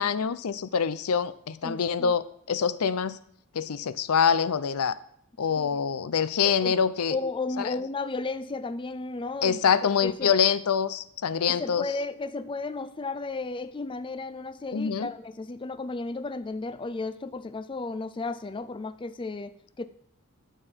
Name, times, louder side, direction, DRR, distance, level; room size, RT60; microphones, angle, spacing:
voice 1, 0.0-3.2 3.5-5.0 5.4-7.2 7.6-7.7 9.4-11.9 14.7-15.1, left 7 dB, 80° left, 15 dB, 0.5 m, -25 dB
voice 2, 1.6-2.1 5.6-5.7 6.4-6.8 7.1-9.6 10.0-10.3 11.5-19.8, left 3 dB, 20° left, 12 dB, 0.4 m, -34 dB
12.5 x 6.9 x 4.5 m, 0.66 s
head